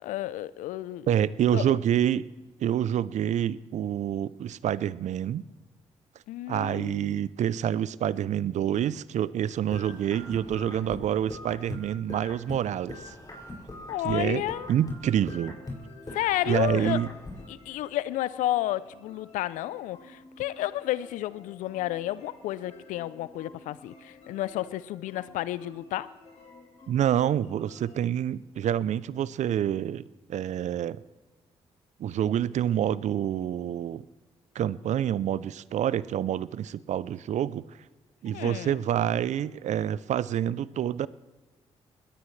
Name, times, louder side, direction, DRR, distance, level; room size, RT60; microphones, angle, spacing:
voice 1, 0.0-1.1 1.5-1.8 6.3-7.3 13.9-14.7 16.1-17.0 17.5-26.1 38.3-38.8, left 14 dB, 80° left, 18 dB, 0.5 m, -31 dB
voice 2, 1.1-2.3 2.6-5.4 6.5-13.1 14.0-14.4 14.7-15.6 16.5-17.1 26.9-30.0 30.3-31.0 32.0-34.0 34.5-37.6 38.2-41.1, right 10 dB, 65° right, 19 dB, 0.5 m, -27 dB
sound 1, 9.7-12.6 12.9-15.8 16.1-17.4, left 2 dB, 30° left, 6.2 m, -41 dB
sound 2, 14.3-28.1, left 2 dB, 65° left, 3.7 m, -53 dB
21.5 x 17.0 x 3.3 m, 1.2 s
supercardioid pair, 50°, 13 cm